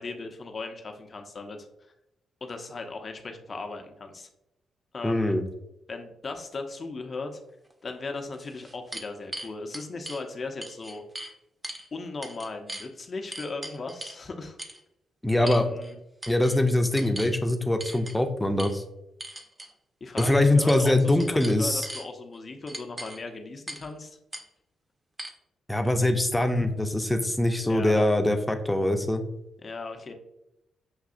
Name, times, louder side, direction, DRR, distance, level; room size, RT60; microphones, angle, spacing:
voice 1, 0.0-1.7 2.4-4.3 4.9-5.3 5.9-7.4 7.8-11.0 11.9-14.6 15.4-16.0 20.0-24.2 27.7-28.1 29.6-30.1, left 3 dB, 45° left, 5 dB, 0.7 m, -37 dB
voice 2, 5.0-5.4 15.2-15.6 16.3-18.8 20.2-21.9 25.7-29.2, left 1 dB, 10° left, 6 dB, 0.7 m, -23 dB
sound 1, 7.7-7.8 8.3-10.2 10.6-11.3 11.6-11.9 12.2-12.9 13.3-14.2 14.6-14.8 15.5-15.9 16.2-16.6 17.0-17.3 17.8-18.2 18.6-18.7 19.2-19.7 20.2-20.3 20.7-20.9 21.2-22.1 22.7-23.2 23.7-23.9 24.3-24.4 25.2-25.3, right 1 dB, 30° right, 0.8 m, -39 dB
6.4 x 2.7 x 2.5 m, 0.85 s
hypercardioid pair, 50°, 0 cm